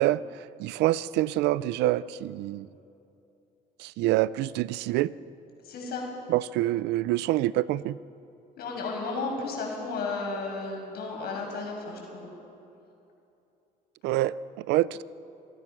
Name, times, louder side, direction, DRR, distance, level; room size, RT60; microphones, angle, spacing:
voice 1, 0.0-2.7 3.8-5.1 6.3-8.0 14.0-15.0, right 15 dB, 85° right, 18 dB, 0.5 m, -26 dB
voice 2, 5.6-6.1 8.6-12.3, left 3 dB, 70° left, 0 dB, 6.5 m, -33 dB
27.0 x 18.0 x 6.1 m, 2.8 s
cardioid pair, 110°, 17 cm